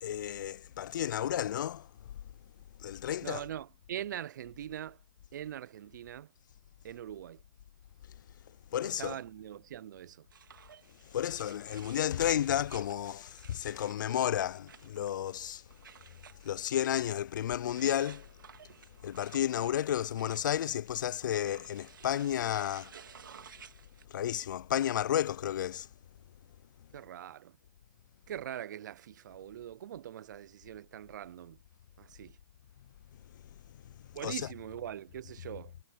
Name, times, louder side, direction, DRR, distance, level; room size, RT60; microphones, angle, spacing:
voice 1, 0.0-1.9 2.8-3.4 8.7-9.2 11.1-15.6 16.4-18.3 19.0-22.9 24.1-25.9 34.2-34.4, left 10 dB, 70° left, 0.4 m, -32 dB
voice 2, 3.2-5.0 5.3-6.3 6.8-7.4 9.0-10.3 26.9-27.6 28.3-31.6 32.0-32.4 34.1-35.7, right 11 dB, 70° right, 0.4 m, -42 dB
sound 1, 10.3-24.0, right 7 dB, 90° right, 2.0 m, -56 dB
hypercardioid pair, 155°, 10 cm